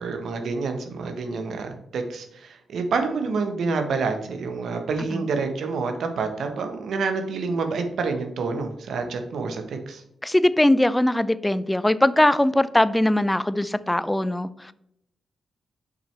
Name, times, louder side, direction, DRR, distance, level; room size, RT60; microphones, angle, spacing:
voice 1, 0.0-10.0, right 4 dB, 70° right, 6 dB, 1.0 m, -28 dB
voice 2, 10.2-14.7, left 1 dB, 15° left, 16 dB, 0.4 m, -21 dB
6.6 x 5.6 x 3.2 m, 0.79 s
hypercardioid pair, 40°, 0 cm